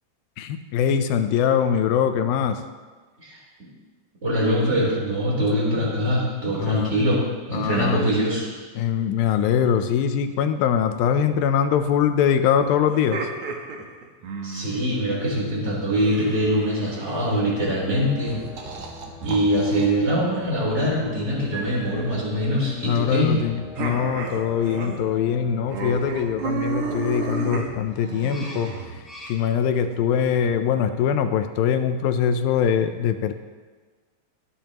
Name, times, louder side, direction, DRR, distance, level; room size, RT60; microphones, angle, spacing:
voice 1, 0.4-2.6 6.6-6.9 7.5-8.1 8.8-13.3 22.8-28.7 29.3-33.3, left 8 dB, 80° left, 8 dB, 2.4 m, -22 dB
voice 2, 4.2-8.5 14.4-18.4 19.2-23.4, equal, 20° right, -5 dB, 3.6 m, -23 dB
sound 1, 12.9-14.9 15.9-17.3 18.3-19.9 21.5-21.9 23.8-25.0 25.3-25.4 25.7-29.3, right 4 dB, 60° right, 2.1 m, -32 dB
sound 2, 17.2-30.6, left 1 dB, ahead, 2.4 m, -43 dB
22.5 x 9.3 x 3.0 m, 1.4 s
omnidirectional pair, 4.3 m